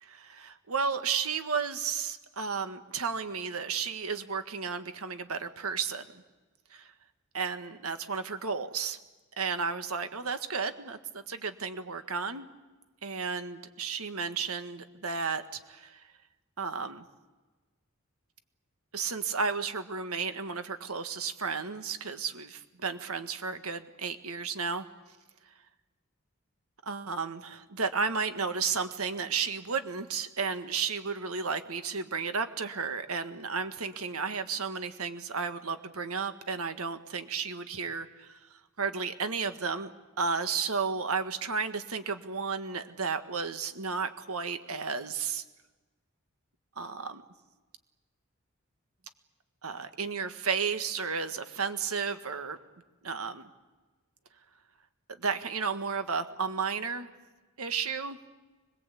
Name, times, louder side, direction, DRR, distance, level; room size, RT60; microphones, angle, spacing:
voice 1, 0.0-6.2 6.7-6.9 7.3-9.0 9.4-12.5 13.0-16.1 16.6-17.0 18.9-24.8 26.8-38.4 38.8-39.9 40.2-45.4 46.8-47.2 49.6-52.6 53.0-53.5 55.2-57.1 57.6-58.2, right 5 dB, 85° right, 9 dB, 1.7 m, -33 dB
25.0 x 21.5 x 8.5 m, 1.2 s
head